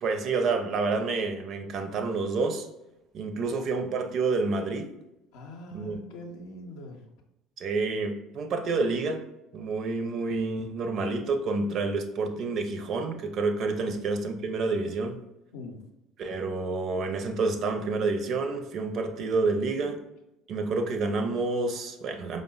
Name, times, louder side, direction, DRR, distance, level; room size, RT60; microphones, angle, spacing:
voice 1, 0.0-2.7 3.1-4.9 5.7-6.0 7.6-9.2 9.5-15.2 16.2-20.0 20.5-22.4, right 3 dB, 50° right, 6 dB, 0.4 m, -28 dB
voice 2, 5.3-7.0 13.8-13.9 15.5-15.8, left 1 dB, 65° left, 3 dB, 0.6 m, -43 dB
4.8 x 2.1 x 2.3 m, 0.91 s
figure-of-eight pair, 60°, 0 cm